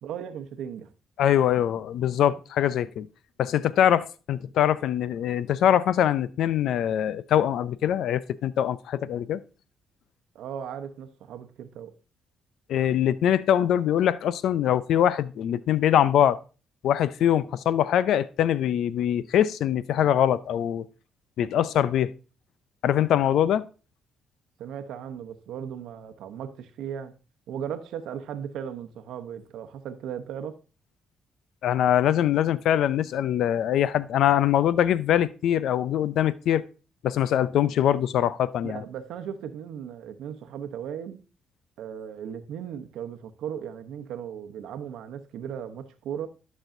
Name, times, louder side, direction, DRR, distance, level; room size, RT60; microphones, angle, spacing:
voice 1, 0.0-0.9 10.3-12.0 24.6-27.2 27.5-30.6 38.6-41.2 41.8-46.3, right 8 dB, 80° right, 0.8 m, -37 dB
voice 2, 1.2-3.1 3.4-9.4 12.7-16.4 16.8-20.8 21.4-22.1 22.8-23.7 31.6-36.6 37.0-38.8, left 10 dB, 75° left, 0.4 m, -23 dB
11.5 x 6.2 x 2.6 m
cardioid pair, 90°, 0 cm